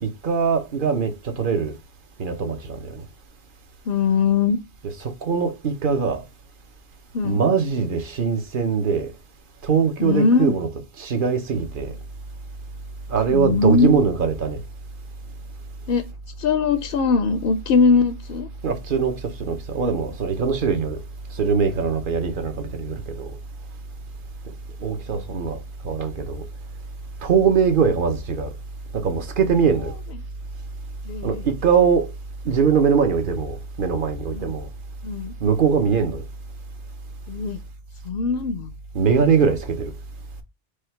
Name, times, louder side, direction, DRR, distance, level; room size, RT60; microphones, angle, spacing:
voice 1, 0.0-1.8 2.2-3.0 4.8-6.2 7.2-9.1 9.6-10.7 11.0-11.9 13.1-14.6 18.6-21.0 21.4-23.3 24.8-25.6 25.8-26.5 27.2-28.5 28.9-29.9 31.2-32.1 32.4-34.7 35.4-36.2 38.9-39.9, right 6 dB, 50° right, 1.0 m, -22 dB
voice 2, 3.9-4.6 7.1-7.4 10.0-10.5 13.3-14.0 15.9-16.0 16.4-18.5 31.1-31.4 34.3-34.5 35.0-35.3 37.3-37.6 38.1-38.7, left 5 dB, 65° left, 0.7 m, -20 dB
4.9 x 2.4 x 4.4 m
omnidirectional pair, 1.2 m